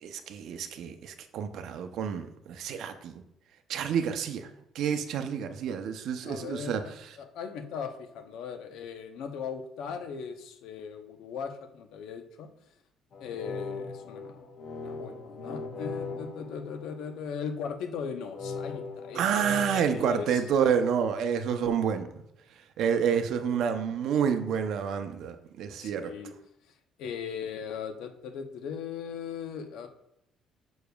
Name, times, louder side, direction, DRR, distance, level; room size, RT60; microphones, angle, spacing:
voice 1, 0.0-3.1 3.7-4.5 4.7-6.8 19.1-22.1 22.8-26.1, right 7 dB, 65° right, 8 dB, 0.6 m, -29 dB
voice 2, 6.2-12.5 13.2-14.4 14.8-19.2 19.5-19.6 19.9-20.4 25.8-26.3 27.0-29.9, left 6 dB, 80° left, 6 dB, 0.8 m, -38 dB
sound 1, 13.1-17.5 18.3-20.1, left 4 dB, 40° left, 0.6 m, -39 dB
6.8 x 6.2 x 2.3 m, 0.79 s
cardioid pair, 155°, 0 cm